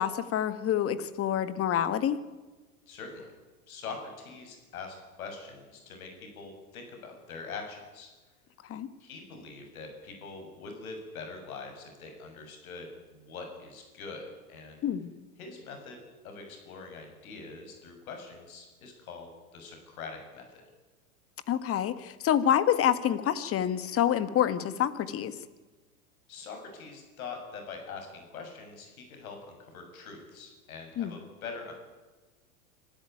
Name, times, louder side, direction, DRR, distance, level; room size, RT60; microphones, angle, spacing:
voice 1, 0.0-2.2 8.7-8.9 14.8-15.1 21.5-25.3 31.0-31.1, left 10 dB, 30° left, 13 dB, 1.7 m, -27 dB
voice 2, 2.9-3.3 3.7-8.1 9.0-14.8 15.4-20.6 26.3-31.7, left 4 dB, 75° left, 4 dB, 7.4 m, -43 dB
25.5 x 13.5 x 9.5 m, 1.2 s
hypercardioid pair, 105°, 43 cm